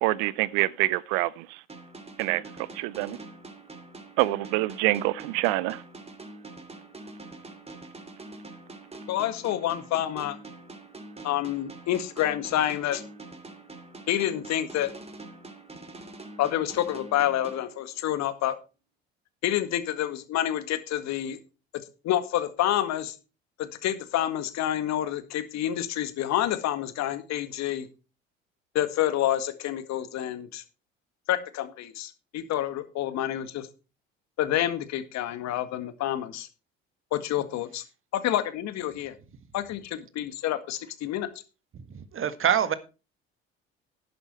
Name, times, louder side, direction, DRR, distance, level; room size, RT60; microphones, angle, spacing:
voice 1, 0.0-1.5 2.2-2.4 2.8-3.2 4.2-5.8, right 19 dB, 65° right, 0.6 m, -26 dB
sound 1, 1.7-18.3, right 2 dB, 20° right, 2.9 m, -45 dB
voice 2, 9.1-10.4 11.2-13.0 14.1-14.9 16.4-18.5 19.4-21.4 22.0-23.1 23.6-27.9 28.8-30.6 31.3-33.7 34.4-36.5 37.1-37.8 38.1-39.1 39.5-41.3, left 12 dB, 55° left, 1.8 m, -28 dB
voice 3, 41.9-42.7, right 9 dB, 40° right, 1.6 m, -25 dB
11.0 x 10.5 x 4.5 m
hypercardioid pair, 60°, 32 cm